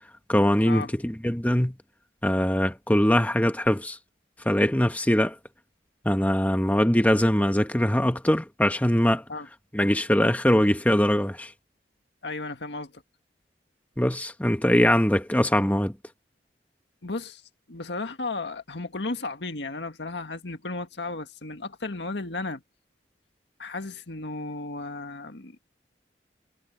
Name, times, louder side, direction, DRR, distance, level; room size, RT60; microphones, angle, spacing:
voice 1, 0.3-1.8 2.2-4.0 4.4-5.3 6.0-9.2 9.7-11.5 14.0-15.9, equal, 10° left, 1.3 m, -22 dB
voice 2, 12.2-13.0 17.0-17.4 17.7-22.6 23.6-25.6, left 3 dB, 85° left, 1.8 m, -34 dB
head